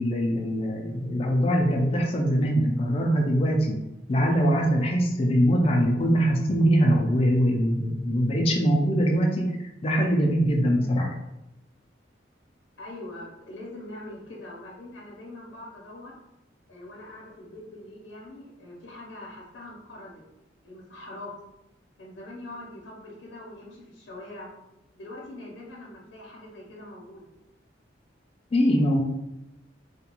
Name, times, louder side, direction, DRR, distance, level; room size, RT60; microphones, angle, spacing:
voice 1, 0.0-3.8 4.1-11.1 28.5-29.0, equal, 30° left, 0 dB, 0.4 m, -22 dB
voice 2, 12.8-16.2 16.7-20.2 20.6-21.3 22.0-24.5 24.9-27.2, left 1 dB, 85° left, -4 dB, 0.6 m, -43 dB
2.4 x 2.2 x 2.9 m, 0.90 s
head